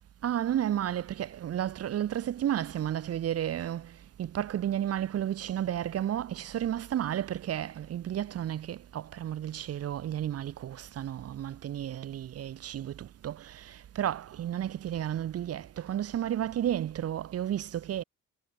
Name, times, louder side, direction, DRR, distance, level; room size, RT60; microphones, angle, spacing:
voice 1, 0.2-18.0, right 11 dB, 55° right, 0.8 m, -32 dB
cardioid pair, 90°, 30 cm